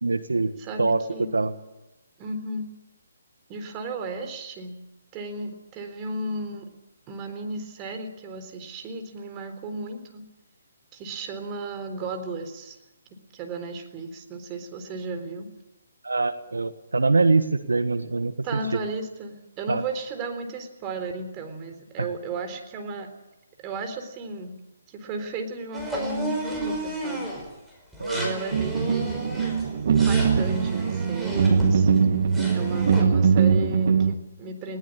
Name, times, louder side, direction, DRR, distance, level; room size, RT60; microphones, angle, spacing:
voice 1, 0.0-0.5 0.8-1.5 16.0-18.3 19.7-19.8 22.0-22.1 28.0-28.3, right 3 dB, 90° right, 11 dB, 1.4 m, -23 dB
voice 2, 0.6-1.3 2.2-2.7 3.5-4.8 5.1-6.7 7.1-10.2 10.9-12.8 13.3-15.5 18.4-23.1 23.6-24.6 24.9-27.3 28.1-29.3 29.7-31.9 32.5-34.8, right 2 dB, 25° right, 6 dB, 3.8 m, -34 dB
sound 1, 25.7-27.5 27.9-32.0 32.3-33.0, right 1 dB, 5° right, 5.1 m, -33 dB
sound 2, 28.5-34.1, right 6 dB, 50° right, 1.6 m, -21 dB
20.5 x 18.5 x 8.6 m, 0.99 s
hypercardioid pair, 150°, 0 cm